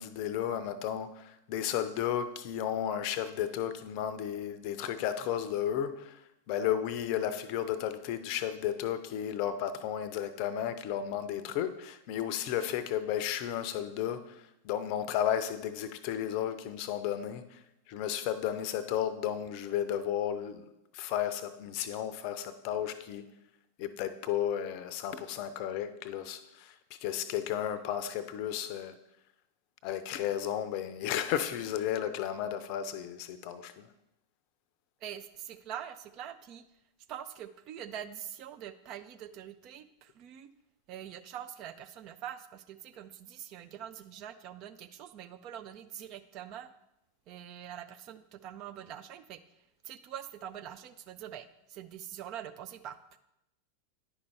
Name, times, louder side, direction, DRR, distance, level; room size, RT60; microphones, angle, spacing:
voice 1, 0.0-6.2 6.5-14.3 14.6-17.6 17.9-20.6 20.9-23.2 23.8-26.7 27.0-29.0 29.8-33.9, left 10 dB, 45° left, 0.5 m, -33 dB
voice 2, 35.0-36.7 37.1-40.5 40.9-46.7 47.3-49.4 49.8-53.2, right 10 dB, 40° right, 0.4 m, -44 dB
9.9 x 5.3 x 3.3 m
figure-of-eight pair, 90°, 0 cm